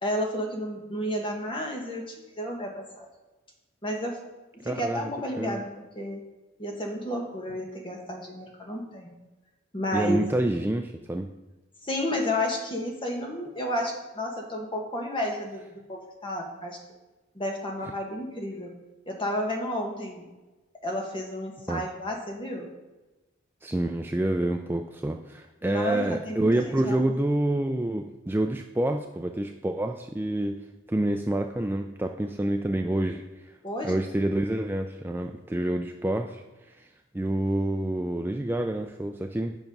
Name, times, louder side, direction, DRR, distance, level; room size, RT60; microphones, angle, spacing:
voice 1, 0.0-3.1 3.8-4.2 4.6-5.7 5.9-6.2 6.6-9.1 9.7-10.2 11.8-16.8 17.3-18.7 19.1-20.3 20.8-22.7 25.6-27.0 33.6-34.0, left 1 dB, 25° left, 0 dB, 1.6 m, -31 dB
voice 2, 4.6-5.1 5.4-5.6 9.9-11.3 17.8-17.9 21.7-21.8 23.6-30.5 30.9-33.5 33.8-36.9 37.1-39.6, right 1 dB, 10° right, 4 dB, 0.3 m, -28 dB
9.2 x 5.9 x 5.3 m, 1.1 s
head